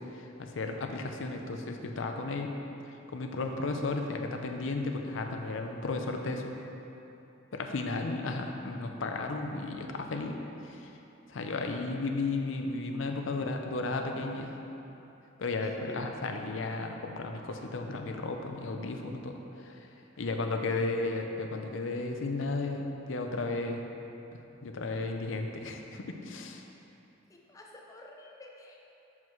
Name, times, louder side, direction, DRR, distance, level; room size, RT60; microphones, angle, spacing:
voice 1, 0.0-2.5 3.1-6.5 7.5-10.9 11.3-14.5 15.4-19.9 20.2-23.8 24.6-26.6, left 3 dB, 70° left, 3 dB, 0.6 m, -34 dB
voice 2, 15.6-16.0 20.1-20.5 27.3-28.9, left 2 dB, 15° left, 0 dB, 0.4 m, -51 dB
7.5 x 5.9 x 3.1 m, 2.9 s
head